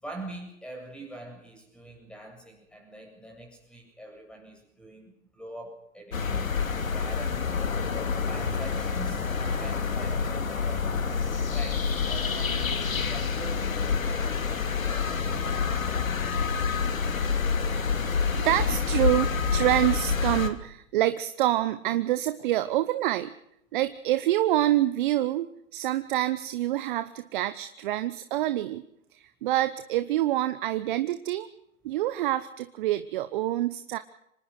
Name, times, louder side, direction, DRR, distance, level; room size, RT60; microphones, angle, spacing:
voice 1, 0.0-7.5 8.2-12.8 13.1-15.5 15.8-16.2, right 1 dB, ahead, 3 dB, 7.6 m, -44 dB
sound 1, 6.1-20.5, left 5 dB, 75° left, 3.0 m, -27 dB
voice 2, 18.4-23.3 23.7-28.8 29.1-31.5 31.8-34.0, right 14 dB, 40° right, 11 dB, 1.1 m, -26 dB
25.5 x 19.5 x 6.6 m, 0.77 s
hypercardioid pair, 125°, 41 cm